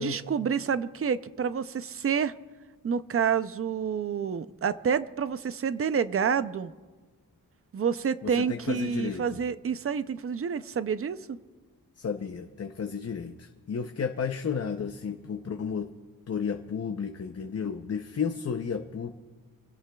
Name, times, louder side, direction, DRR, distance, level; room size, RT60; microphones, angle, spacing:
voice 1, 0.0-2.3 2.8-6.7 7.7-11.4, right 7 dB, 40° right, 13 dB, 0.5 m, -28 dB
voice 2, 8.2-9.4 12.0-15.9 16.3-19.1, left 6 dB, 45° left, 6 dB, 0.6 m, -33 dB
27.0 x 17.0 x 2.3 m, 1.4 s
wide cardioid pair, 160°, 35 cm